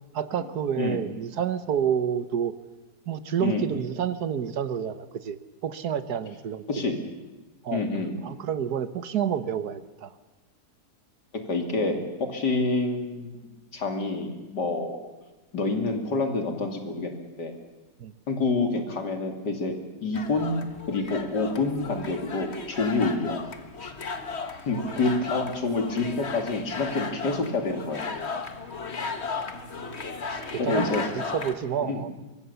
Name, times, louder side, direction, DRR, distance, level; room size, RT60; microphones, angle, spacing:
voice 1, 0.1-2.5 3.1-5.4 5.6-6.6 7.6-7.8 8.2-10.1 18.0-18.1 24.8-25.0 30.3-32.1, right 8 dB, 70° right, 13 dB, 1.5 m, -29 dB
voice 2, 3.4-3.7 6.7-7.0 7.7-8.2 11.3-15.0 15.5-17.5 18.3-20.6 20.9-23.5 23.8-23.9 24.7-28.0 30.6-31.1 31.9-32.0, left 3 dB, 75° left, 4 dB, 3.3 m, -28 dB
sound 1, 20.1-31.5, left 4 dB, 40° left, 1.8 m, -35 dB
24.5 x 23.0 x 7.0 m, 1.1 s
omnidirectional pair, 1.8 m